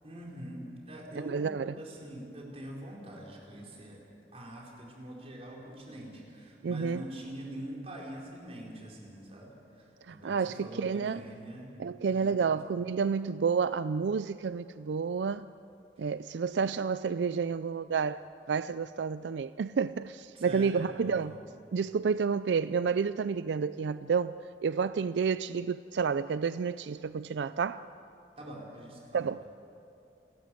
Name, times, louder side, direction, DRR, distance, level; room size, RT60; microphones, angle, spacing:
voice 1, 0.0-4.0 4.3-9.5 10.1-11.7 12.1-12.6 16.6-16.7 20.3-21.3 28.4-29.3, right 1 dB, 35° right, 4.5 m, -44 dB
voice 2, 1.2-1.8 6.6-7.0 10.1-11.2 11.8-15.5 16.0-18.2 18.5-21.4 21.7-24.4 24.6-27.8 29.1-29.4, right 5 dB, 85° right, 0.4 m, -30 dB
29.0 x 13.5 x 7.7 m
head